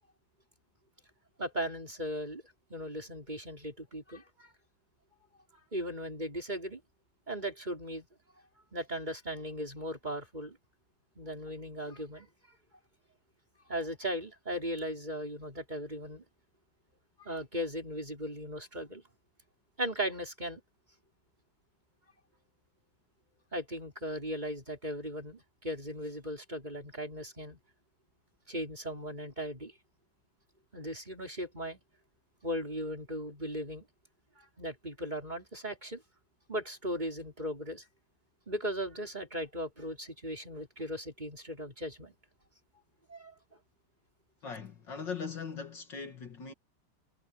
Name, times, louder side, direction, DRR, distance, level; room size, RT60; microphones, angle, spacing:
voice 1, 1.4-2.4 2.7-4.5 5.7-6.8 7.3-8.1 8.7-10.6 11.2-12.3 13.7-16.2 17.2-19.0 19.8-20.6 23.5-27.6 28.5-29.7 30.7-31.8 32.4-33.8 34.4-36.0 36.5-37.8 38.5-42.1 43.1-43.3, equal, 20° right, 5.2 m, -37 dB
voice 2, 44.4-46.5, left 5 dB, 60° left, 2.5 m, -40 dB
omnidirectional pair, 2.3 m